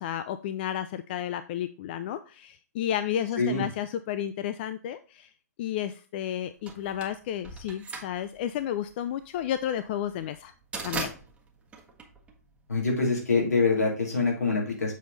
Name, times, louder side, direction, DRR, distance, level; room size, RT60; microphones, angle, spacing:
voice 1, 0.0-5.3 5.6-10.5 10.8-11.1, left 10 dB, 40° left, 12 dB, 0.4 m, -32 dB
sound 1, 6.7-12.8, right 4 dB, 15° right, 1.3 m, -39 dB
voice 2, 12.7-14.9, left 4 dB, 75° left, -1 dB, 3.2 m, -25 dB
7.0 x 4.3 x 4.1 m, 0.37 s
figure-of-eight pair, 120°, 9 cm